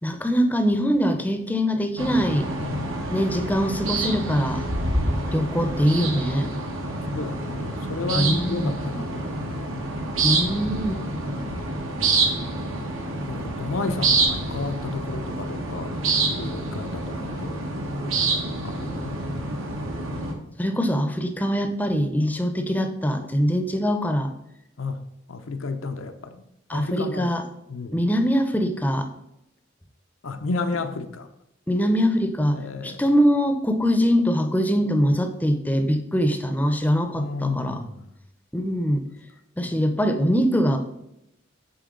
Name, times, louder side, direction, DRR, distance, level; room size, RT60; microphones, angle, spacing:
voice 1, 0.0-2.5 3.1-4.6 5.3-6.5 8.2-8.7 10.2-10.9 20.6-24.3 26.7-27.4 27.9-29.1 31.7-37.8 38.5-39.0 39.6-40.8, equal, 10° left, 6 dB, 0.6 m, -23 dB
sound 1, 2.0-20.3, right 3 dB, 85° right, 1.3 m, -27 dB
voice 2, 2.6-3.0 7.1-9.8 10.5-11.6 13.3-15.9 16.3-17.7 18.6-19.2 24.8-25.0 25.3-27.3 27.7-28.1 30.2-31.3 32.5-33.2 37.2-38.1 39.6-39.8, left 3 dB, 80° left, 8 dB, 0.7 m, -32 dB
10.0 x 4.5 x 3.8 m, 0.84 s
head